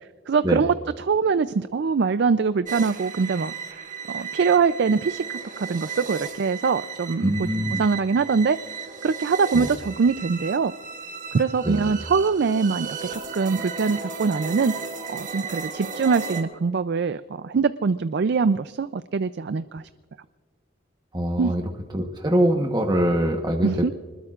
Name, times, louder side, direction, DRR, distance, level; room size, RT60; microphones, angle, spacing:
voice 1, 0.3-3.5 4.1-5.2 5.6-10.7 11.3-14.7 15.1-19.8 21.4-21.5 23.6-23.9, right 5 dB, 60° right, 13 dB, 0.4 m, -23 dB
sound 1, 2.7-16.4, right 5 dB, 40° right, 1.6 m, -35 dB
voice 2, 7.2-7.8 9.5-9.7 11.6-11.9 21.1-21.6 21.9-23.9, equal, 20° right, 2 dB, 1.0 m, -23 dB
25.5 x 20.5 x 2.5 m, 1.5 s
head